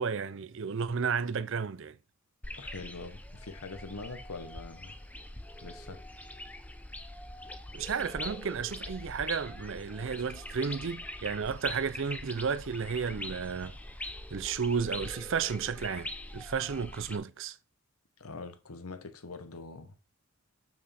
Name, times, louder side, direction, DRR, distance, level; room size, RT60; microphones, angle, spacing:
voice 1, 0.0-2.0 7.7-13.8 14.3-17.6, right 6 dB, 60° right, 0.5 m, -33 dB
sound 1, 2.4-17.2, left 1 dB, 5° left, 0.6 m, -43 dB
voice 2, 2.6-5.0 5.6-6.0 18.2-20.0, left 3 dB, 85° left, 1.1 m, -43 dB
7.3 x 6.1 x 4.3 m
head